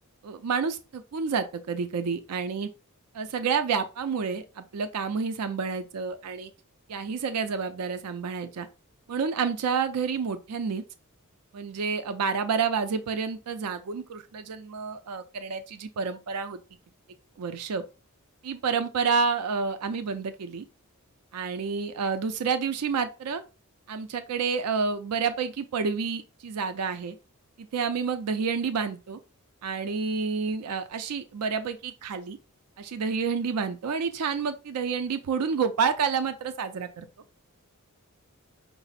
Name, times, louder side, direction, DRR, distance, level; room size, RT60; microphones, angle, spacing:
voice 1, 0.2-2.7 3.1-6.5 6.9-8.7 9.1-10.8 11.5-16.6 17.4-17.8 18.4-20.6 21.3-23.4 23.9-27.2 27.6-29.2 29.6-32.4 32.8-37.1, right 5 dB, 90° right, 0.5 m, -29 dB
5.7 x 2.0 x 4.0 m
head